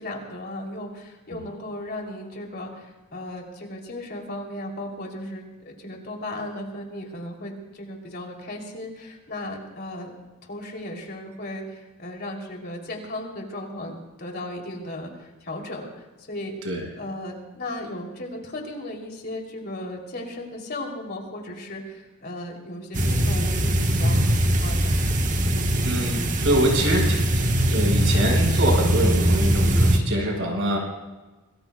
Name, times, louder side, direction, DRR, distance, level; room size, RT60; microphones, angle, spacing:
voice 1, 0.0-10.1 10.4-16.5 17.0-24.9, left 1 dB, 45° left, 0 dB, 3.2 m, -36 dB
sound 1, 22.9-30.0, right 1 dB, 35° right, 1.3 m, -21 dB
voice 2, 25.8-27.2 27.7-30.8, right 1 dB, 60° right, 1 dB, 5.2 m, -24 dB
27.0 x 20.5 x 2.3 m, 1.2 s
head